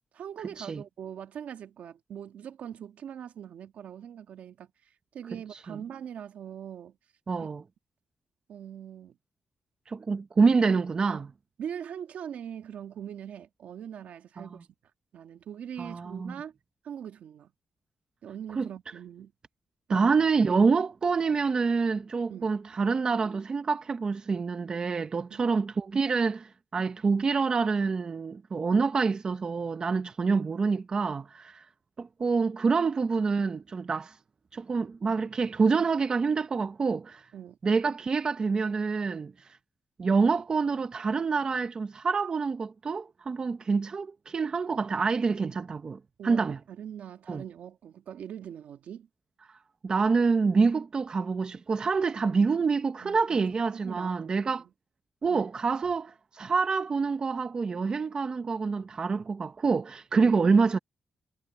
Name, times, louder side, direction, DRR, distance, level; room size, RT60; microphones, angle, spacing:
voice 1, 0.1-7.0 8.5-9.2 11.1-11.2 11.6-14.6 15.1-16.6 16.8-17.5 18.2-19.3 19.9-20.1 22.3-22.5 25.3-25.5 37.3-37.6 46.2-49.1 53.0-53.4 53.7-54.4 55.3-55.5, right 9 dB, 75° right, 1.8 m, -42 dB
voice 2, 7.3-7.6 9.9-11.3 14.4-14.5 15.8-16.3 18.6-18.7 19.9-31.6 32.0-34.2 34.5-37.2 37.6-39.3 40.0-46.6 47.3-47.4 49.8-54.7 55.2-60.8, right 4 dB, 35° right, 0.8 m, -27 dB
wide cardioid pair, 140°, 2 cm